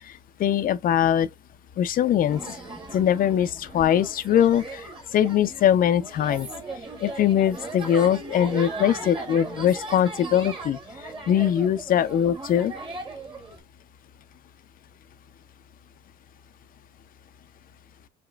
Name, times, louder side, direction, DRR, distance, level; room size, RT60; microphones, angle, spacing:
voice 1, 0.4-1.3 1.8-2.6 2.9-4.8 5.1-6.5 7.0-10.8 11.3-12.7, left 10 dB, 45° left, 0.5 m, -22 dB
sound 1, 2.3-13.6, right 2 dB, 25° right, 1.4 m, -38 dB
5.0 x 3.0 x 2.3 m
cardioid pair, 120°, 20 cm